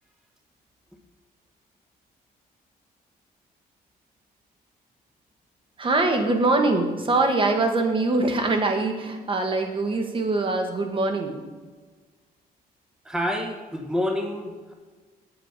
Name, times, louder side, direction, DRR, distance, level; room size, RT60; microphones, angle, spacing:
voice 1, 5.8-11.4, right 2 dB, 30° right, 4 dB, 1.5 m, -23 dB
voice 2, 13.0-14.7, left 1 dB, 5° right, 3 dB, 1.2 m, -28 dB
8.1 x 7.5 x 5.1 m, 1.3 s
cardioid pair, 115°, 16 cm